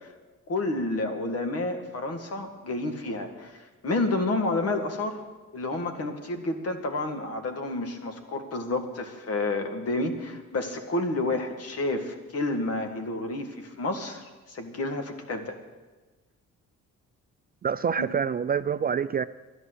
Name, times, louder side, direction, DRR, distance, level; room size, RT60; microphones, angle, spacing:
voice 1, 0.5-5.2 5.5-15.6 18.0-18.1, left 2 dB, 50° left, 6 dB, 2.0 m, -30 dB
voice 2, 17.6-19.3, right 7 dB, 30° right, 13 dB, 0.4 m, -26 dB
12.0 x 11.0 x 8.0 m, 1.3 s
cardioid pair, 90°, 30 cm